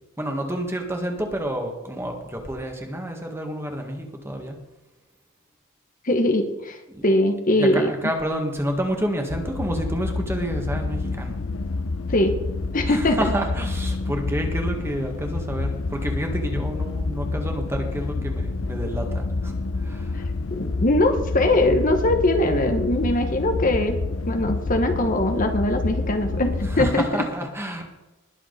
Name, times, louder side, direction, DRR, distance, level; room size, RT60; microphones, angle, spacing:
voice 1, 0.2-4.6 6.9-7.1 7.6-11.4 12.9-20.3 26.6-27.8, right 1 dB, 10° right, 3 dB, 1.9 m, -29 dB
voice 2, 6.0-7.9 12.1-12.4 12.7-13.2 20.1-20.2 20.5-24.0 24.3-27.2, left 1 dB, 40° left, 6 dB, 1.1 m, -21 dB
sound 1, 9.3-26.9, left 3 dB, 70° left, 0.7 m, -28 dB
20.5 x 7.5 x 4.2 m, 1.1 s
head